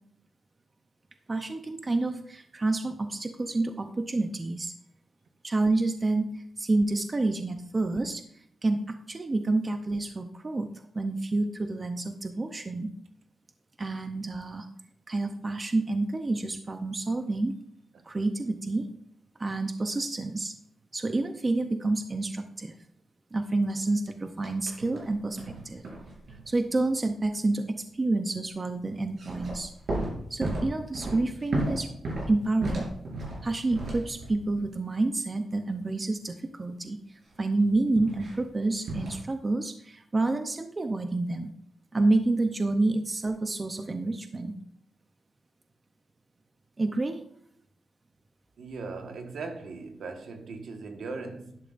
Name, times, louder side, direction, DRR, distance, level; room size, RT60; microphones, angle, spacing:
voice 1, 1.3-4.7 5.4-8.2 8.6-10.7 10.9-12.9 13.8-14.7 15.1-17.5 18.0-18.9 19.4-20.5 20.9-22.8 23.3-25.4 25.6-25.8 26.5-29.7 30.3-31.9 32.3-32.9 33.4-37.0 37.4-41.5 41.9-44.5 46.8-47.2, right 2 dB, 25° right, 0.6 m, -28 dB
sound 1, 24.4-25.1 25.4-26.5 29.1-34.5 38.0-38.4 38.8-39.2, right 1 dB, 55° right, 4.7 m, -34 dB
voice 2, 48.6-51.6, right 4 dB, 70° right, 1.4 m, -39 dB
12.0 x 11.0 x 2.5 m
wide cardioid pair, 155°, 0 cm